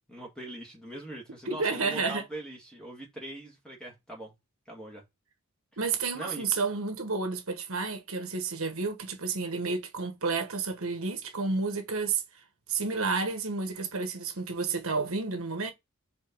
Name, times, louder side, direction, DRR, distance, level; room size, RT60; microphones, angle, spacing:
voice 1, 0.1-4.3 4.7-5.0 6.1-6.5, right 1 dB, 5° left, 2.1 m, -41 dB
voice 2, 1.5-2.2 5.8-12.2 12.7-15.7, right 4 dB, 65° right, 1.3 m, -31 dB
5.1 x 4.1 x 6.0 m
head